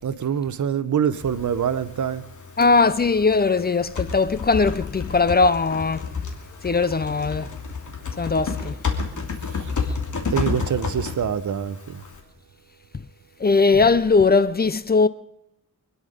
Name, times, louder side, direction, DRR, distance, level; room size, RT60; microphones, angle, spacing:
voice 1, 0.0-2.3 9.5-9.7 10.3-12.0, right 8 dB, 60° right, 0.9 m, -25 dB
Typing, 1.1-12.2, left 5 dB, 60° left, 3.0 m, -31 dB
voice 2, 2.6-6.1 6.6-7.6 8.2-8.8 13.4-15.1, left 4 dB, 30° left, 0.6 m, -19 dB
24.5 x 10.5 x 5.1 m
wide cardioid pair, 125°, 33 cm